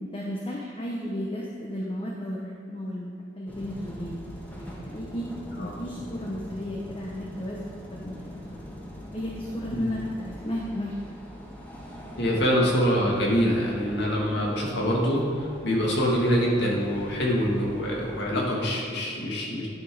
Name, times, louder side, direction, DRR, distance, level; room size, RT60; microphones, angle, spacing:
voice 1, 0.0-4.2 4.6-5.3 5.6-7.6 8.0-8.6 9.1-11.2, left 1 dB, 30° left, -3 dB, 1.0 m, -34 dB
sound 1, 3.5-18.2, equal, 10° left, 1.3 m, -42 dB
voice 2, 12.2-19.7, equal, 65° left, -3 dB, 2.3 m, -25 dB
11.0 x 6.1 x 4.9 m, 2.6 s
head